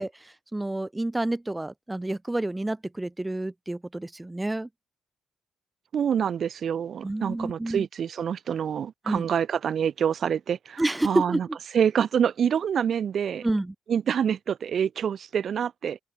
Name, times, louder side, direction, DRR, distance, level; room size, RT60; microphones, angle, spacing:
voice 1, 0.0-4.7 7.0-7.9 9.1-9.3 10.8-11.4 13.4-13.7, right 2 dB, 10° right, 2.0 m, -29 dB
voice 2, 5.9-11.5 11.7-13.5 13.9-16.0, right 8 dB, 55° right, 2.3 m, -26 dB
open air
cardioid pair, 90°, 0 cm